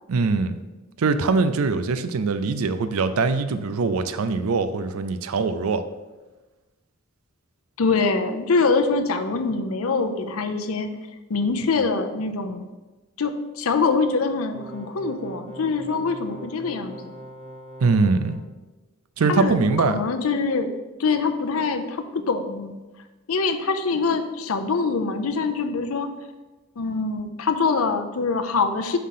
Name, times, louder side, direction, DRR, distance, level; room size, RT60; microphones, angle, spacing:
voice 1, 0.1-0.6 1.0-5.8 17.8-18.4 19.2-20.0, right 4 dB, 90° right, 11 dB, 0.5 m, -22 dB
voice 2, 7.8-10.9 11.3-12.7 13.2-17.1 19.3-20.7 21.0-22.8 23.3-26.1 26.8-29.0, left 4 dB, 85° left, 7 dB, 0.6 m, -24 dB
sound 1, 14.5-18.4, right 1 dB, 30° right, 0.7 m, -42 dB
5.7 x 3.7 x 5.7 m, 1.2 s
head